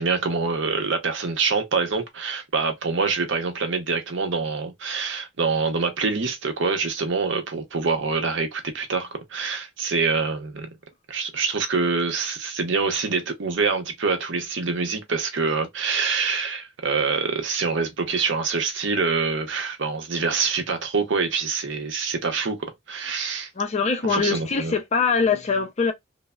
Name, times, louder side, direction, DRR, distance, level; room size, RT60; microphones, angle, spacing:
voice 1, 0.0-10.7 11.1-23.5 24.0-24.8, right 4 dB, 65° right, 0.7 m, -25 dB
voice 2, 23.6-25.9, left 5 dB, 35° left, 0.5 m, -23 dB
3.2 x 2.0 x 2.3 m
head